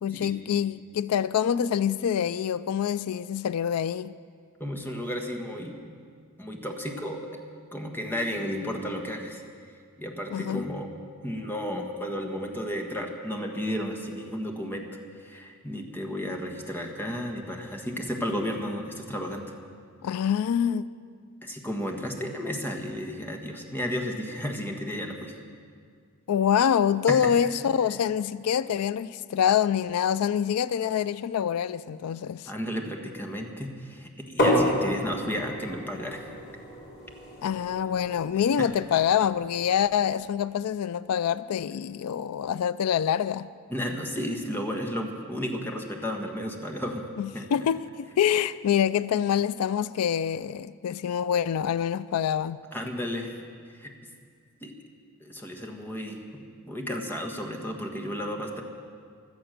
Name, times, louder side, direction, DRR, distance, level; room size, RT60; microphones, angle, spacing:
voice 1, 0.0-4.1 10.3-10.6 20.0-20.8 26.3-32.5 37.4-43.5 47.2-52.6, left 8 dB, 90° left, 0.4 m, -26 dB
voice 2, 4.6-5.8 6.4-7.3 7.7-9.4 10.0-10.9 11.2-14.9 15.1-19.5 21.4-25.3 27.1-27.2 32.5-36.2 38.6-38.7 43.7-47.1 47.3-47.7 52.7-53.4 53.8-53.9 54.6-54.7 55.2-58.6, equal, 10° left, 1.4 m, -33 dB
sound 1, 34.4-40.0, left 1 dB, 50° left, 3.7 m, -30 dB
16.5 x 12.5 x 6.6 m
head